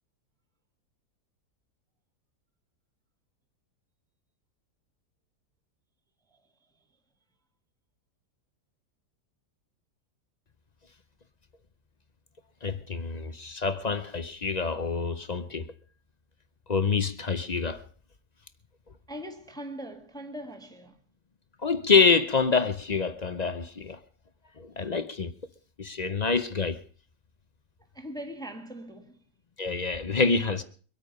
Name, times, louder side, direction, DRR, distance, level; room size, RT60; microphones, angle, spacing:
voice 1, 6.3-6.9 13.2-13.3 19.1-21.0 27.9-29.2, equal, ahead, 1.4 m, -41 dB
voice 2, 12.6-15.7 16.7-17.8 21.6-24.0 24.6-25.3 25.8-26.8 29.6-30.6, left 5 dB, 45° left, 0.5 m, -26 dB
23.5 x 8.9 x 5.3 m
omnidirectional pair, 1.7 m